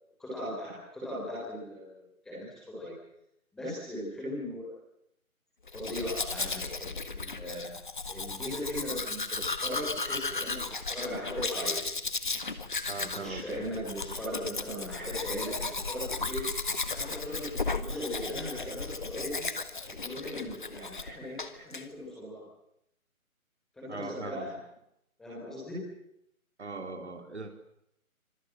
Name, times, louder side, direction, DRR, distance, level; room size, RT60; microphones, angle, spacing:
voice 1, 0.2-2.9 3.5-4.7 5.7-7.7 8.1-11.8 12.9-16.4 16.9-19.5 20.0-22.4 23.7-24.5 25.2-25.8, equal, ahead, -7 dB, 4.1 m, -38 dB
Domestic sounds home sounds, 5.7-21.1 21.4-21.8, left 4 dB, 35° left, 1.7 m, -35 dB
voice 2, 12.9-13.4 23.9-24.6 26.6-27.5, right 3 dB, 50° right, 7 dB, 4.0 m, -40 dB
26.0 x 22.0 x 7.6 m, 0.79 s
figure-of-eight pair, 175°, 43 cm